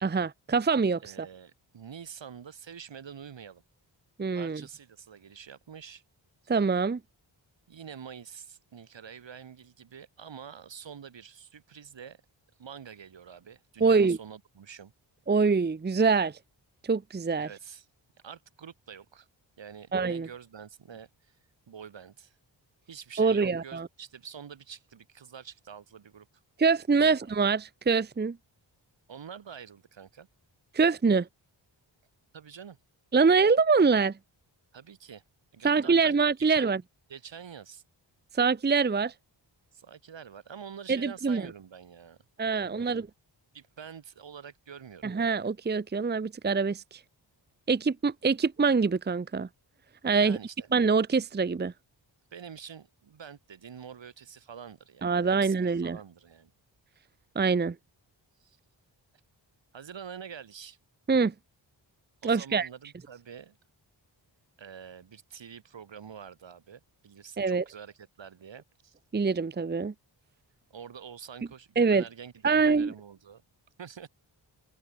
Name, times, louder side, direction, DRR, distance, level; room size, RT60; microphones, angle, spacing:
voice 1, 0.0-1.3 4.2-4.6 6.5-7.0 13.8-14.2 15.3-16.4 16.8-17.5 19.9-20.3 23.2-23.9 26.6-28.4 30.7-31.3 33.1-34.2 35.6-36.8 38.3-39.1 40.9-41.5 42.4-43.1 45.0-47.0 47.7-49.5 50.0-50.4 50.7-51.7 55.0-56.0 57.4-57.7 61.1-61.3 62.2-62.7 67.4-67.6 69.1-69.9 71.8-72.0 72.4-72.9, right 4 dB, 25° right, 0.7 m, -24 dB
voice 2, 1.0-3.6 4.3-6.0 6.4-6.5 7.7-12.2 12.6-14.9 17.4-17.9 18.2-19.3 19.6-21.4 21.7-22.4 22.9-26.3 27.0-27.3 29.1-30.3 32.3-32.8 34.7-35.2 35.5-36.1 36.4-36.8 37.1-37.8 39.7-42.2 42.5-43.0 43.5-45.5 50.1-50.7 52.3-56.5 58.4-58.6 59.7-60.8 62.2-63.6 64.6-68.9 70.7-73.4 73.8-74.1, right 7 dB, 70° right, 3.3 m, -46 dB
wide cardioid pair, 160°, 45 cm